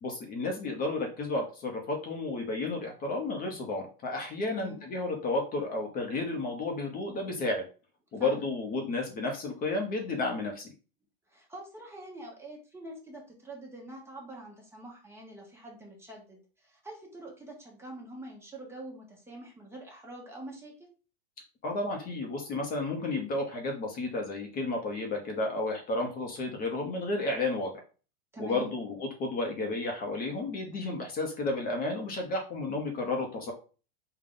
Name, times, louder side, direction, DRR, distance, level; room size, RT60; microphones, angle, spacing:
voice 1, 0.0-7.7 8.1-10.7 21.6-27.8 28.4-33.5, left 2 dB, 30° left, 2 dB, 0.8 m, -32 dB
voice 2, 4.4-4.8 8.1-8.5 11.3-20.9 28.3-28.7, right 1 dB, 10° right, -1 dB, 0.9 m, -45 dB
3.7 x 2.3 x 3.6 m, 0.36 s
supercardioid pair, 135°, 30 cm